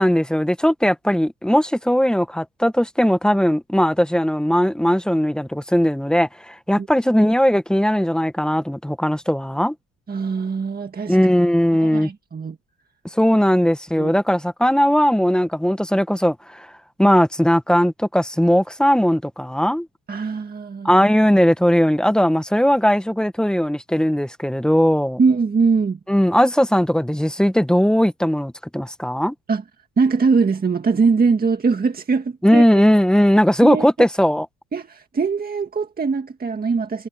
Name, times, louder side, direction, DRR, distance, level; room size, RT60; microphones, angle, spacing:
voice 1, 0.0-9.7 11.1-12.1 13.1-16.7 17.0-19.9 20.8-25.2 26.1-29.3 32.4-34.5, equal, 5° left, 1.4 m, -18 dB
voice 2, 10.1-11.2 11.8-12.6 14.0-14.1 20.1-21.0 25.2-26.0 29.5-29.6 30.0-32.6 33.6-33.9 34.7-37.1, right 4 dB, 30° right, 1.8 m, -21 dB
cardioid pair, 95°, 30 cm